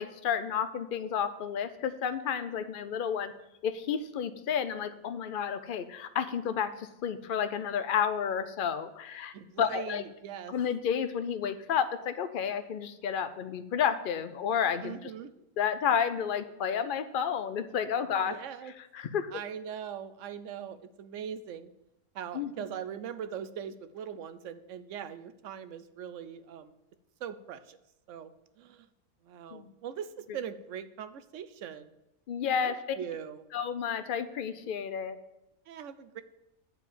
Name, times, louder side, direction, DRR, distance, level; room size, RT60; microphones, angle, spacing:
voice 1, 0.0-3.3 3.6-10.0 10.5-15.1 15.6-18.3 18.9-19.3 22.3-22.5 29.5-29.7 32.3-33.0 33.5-35.2, left 7 dB, 75° left, 10 dB, 0.4 m, -31 dB
voice 2, 9.3-10.5 14.8-15.3 18.2-18.7 19.3-21.7 22.1-26.7 27.2-27.8 28.1-28.9 29.2-31.9 32.6-33.4 35.7-36.2, right 8 dB, 65° right, 12 dB, 0.8 m, -41 dB
9.4 x 4.6 x 7.2 m, 0.87 s
omnidirectional pair, 1.6 m